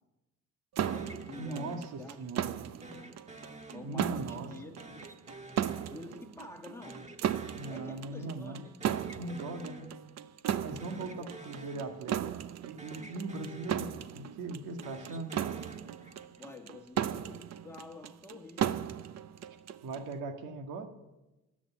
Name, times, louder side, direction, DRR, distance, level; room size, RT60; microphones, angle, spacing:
voice 1, 0.8-2.2 2.5-2.6 3.7-5.0 5.9-7.0 7.7-8.8 11.0-11.3 16.4-18.8, left 2 dB, 10° left, 2 dB, 2.3 m, -48 dB
sound 1, 0.8-2.3 2.8-4.4 4.8-6.6 6.8-8.3 8.6-10.3 10.7-12.5 12.8-14.4 14.7-16.5, right 1 dB, 25° right, 1.8 m, -49 dB
sound 2, 0.8-20.1, right 10 dB, 60° right, 0.8 m, -36 dB
voice 2, 1.4-2.5 3.8-4.5 7.5-8.6 9.1-9.9 10.6-12.2 12.6-15.3 19.8-20.9, right 3 dB, 90° right, 5 dB, 1.9 m, -39 dB
21.5 x 8.5 x 7.3 m, 1.0 s
cardioid pair, 90°, 30 cm